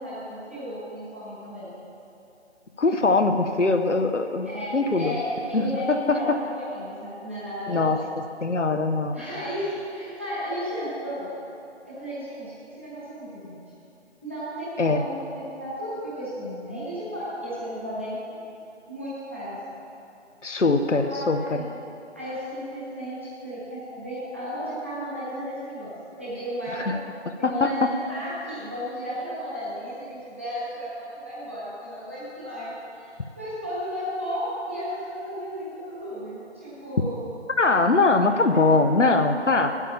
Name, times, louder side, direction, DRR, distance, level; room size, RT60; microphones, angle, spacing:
voice 1, 0.0-1.7 4.4-8.0 9.1-11.3 11.9-13.6 14.2-18.4 18.9-19.6 21.0-21.8 22.1-27.0 27.4-37.2 38.5-38.6, equal, 10° right, -11 dB, 1.2 m, -34 dB
voice 2, 2.8-4.5 4.7-5.2 5.5-6.2 7.7-8.0 8.4-9.2 14.8-15.0 20.4-21.6 26.8-27.0 27.4-27.9 37.6-39.7, left 3 dB, 85° left, 6 dB, 0.8 m, -22 dB
8.5 x 8.3 x 7.0 m, 2.8 s
figure-of-eight pair, 160°, 35 cm